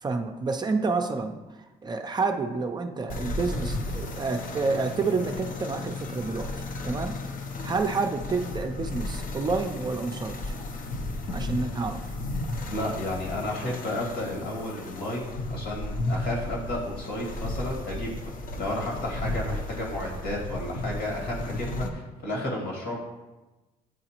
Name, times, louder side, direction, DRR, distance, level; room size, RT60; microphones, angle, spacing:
voice 1, 0.0-1.4 1.8-6.5 6.8-7.2 7.6-10.6 11.3-12.1, right 4 dB, 25° right, 4 dB, 0.5 m, -29 dB
work in progress - lavori in corso, 3.1-21.9, left 2 dB, 55° left, 0.7 m, -34 dB
voice 2, 12.7-23.0, left 1 dB, 75° left, -2 dB, 2.1 m, -32 dB
9.2 x 3.9 x 2.9 m, 1.1 s
cardioid pair, 110°, 17 cm